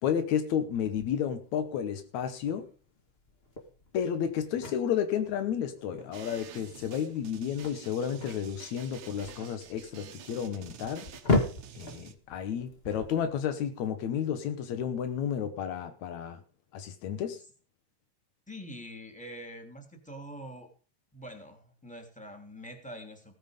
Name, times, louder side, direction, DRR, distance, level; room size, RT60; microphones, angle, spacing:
voice 1, 0.0-2.7 3.9-11.1 11.7-16.4 16.7-17.4, left 8 dB, 80° left, 9 dB, 1.6 m, -32 dB
sound 1, 0.7-13.8, left 2 dB, 55° left, 0.6 m, -37 dB
sound 2, 6.1-12.1, right 10 dB, 75° right, 1.7 m, -49 dB
voice 2, 18.5-20.7 21.1-23.3, equal, ahead, 3 dB, 2.0 m, -44 dB
17.0 x 9.1 x 5.1 m, 0.38 s
omnidirectional pair, 4.9 m